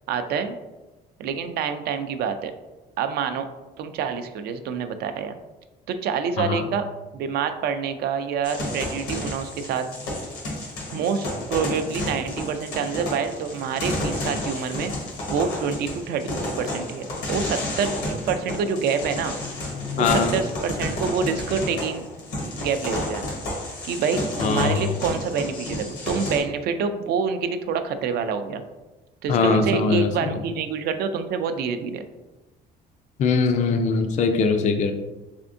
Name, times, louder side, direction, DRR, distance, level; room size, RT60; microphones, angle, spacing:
voice 1, 0.1-0.6 1.2-2.5 3.0-3.5 3.8-5.4 5.9-6.9 7.1-9.9 10.9-14.9 15.3-19.3 20.0-22.0 22.6-23.2 23.8-28.6 29.2-32.0, right 6 dB, 70° right, 9 dB, 0.4 m, -27 dB
sound 1, 8.4-26.4, left 1 dB, 85° left, 1.3 m, -31 dB
voice 2, 20.0-20.3 24.4-24.8 29.3-30.1 33.2-34.9, left 4 dB, 45° left, 6 dB, 0.4 m, -21 dB
3.5 x 3.4 x 2.6 m, 1.1 s
cardioid pair, 110°, 17 cm